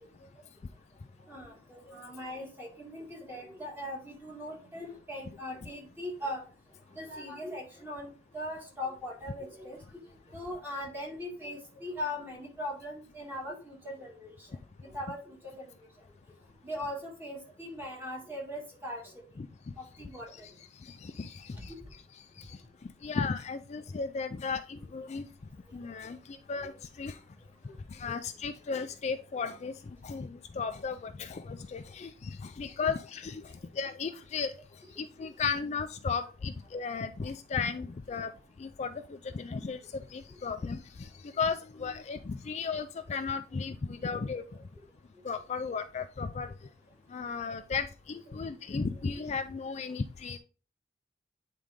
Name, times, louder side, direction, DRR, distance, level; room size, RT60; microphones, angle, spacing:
voice 1, 1.3-6.5 7.0-9.8 10.3-15.6 16.6-19.1 19.8-20.5 21.7-21.8 26.6-26.7 35.2-35.3 38.1-38.2 40.6-40.7, left 1 dB, 10° right, -1 dB, 1.8 m, -40 dB
voice 2, 19.4-19.7 20.3-20.5 20.8-21.7 22.1-22.6 23.0-25.3 25.7-27.2 27.9-34.5 34.9-38.3 38.6-44.4 45.2-46.5 47.1-50.4, left 5 dB, 40° left, 9 dB, 0.4 m, -35 dB
8.9 x 3.8 x 3.5 m, 0.36 s
head